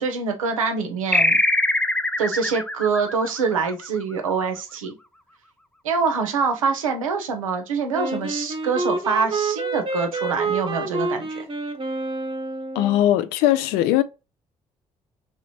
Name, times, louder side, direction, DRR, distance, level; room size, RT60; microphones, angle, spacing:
voice 1, 0.0-1.4 2.2-5.0 5.8-11.4, right 5 dB, 90° right, 0.5 m, -25 dB
sound 1, 1.1-4.1, left 1 dB, 5° left, 0.4 m, -22 dB
Wind instrument woodwind instrument, 7.9-13.0, right 3 dB, 30° right, 1.0 m, -28 dB
voice 2, 12.7-14.0, left 13 dB, 70° left, 0.4 m, -19 dB
3.0 x 3.0 x 3.0 m
hypercardioid pair, 45°, 17 cm